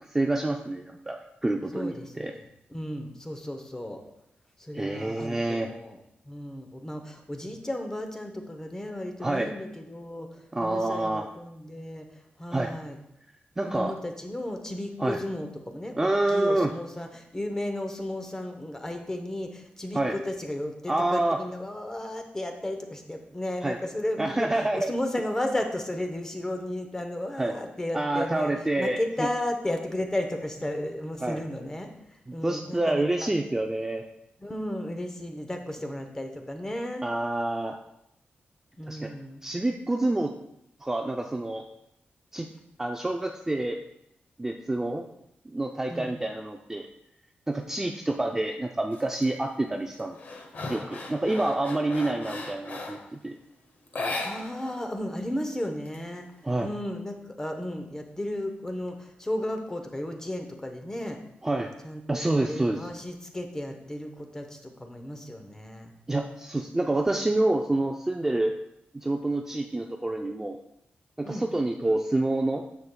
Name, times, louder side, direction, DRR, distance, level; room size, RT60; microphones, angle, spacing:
voice 1, 0.0-2.3 4.7-5.7 9.2-9.5 10.5-11.3 12.5-12.7 13.6-13.9 15.0-15.2 16.0-16.7 19.9-20.2 20.9-21.4 23.6-23.8 24.2-24.9 27.4-27.5 27.9-29.3 31.2-31.4 32.3-34.0 37.0-37.8 38.9-39.1 39.4-40.3 40.8-41.6 42.3-42.5 42.8-43.8 44.4-45.0 45.5-46.9 47.5-50.2 50.7-53.4 56.4-56.7 61.4-61.7 62.1-62.9 66.1-68.6 68.9-70.6 71.2-72.6, right 2 dB, 10° right, 2 dB, 0.3 m, -27 dB
voice 2, 1.7-4.0 4.6-6.0 6.2-12.1 12.4-13.0 13.6-31.9 32.3-33.3 34.4-37.0 38.8-39.4 45.9-46.1 54.2-56.3 56.6-61.2 61.8-65.9 71.2-71.4, left 1 dB, 15° left, 5 dB, 0.7 m, -34 dB
sound 1, 48.9-49.3 49.7-53.1 53.9-54.8 55.1-55.2 55.6-56.5, left 2 dB, 50° left, 0.9 m, -37 dB
9.6 x 7.1 x 2.2 m, 0.80 s
wide cardioid pair, 170°, 4 cm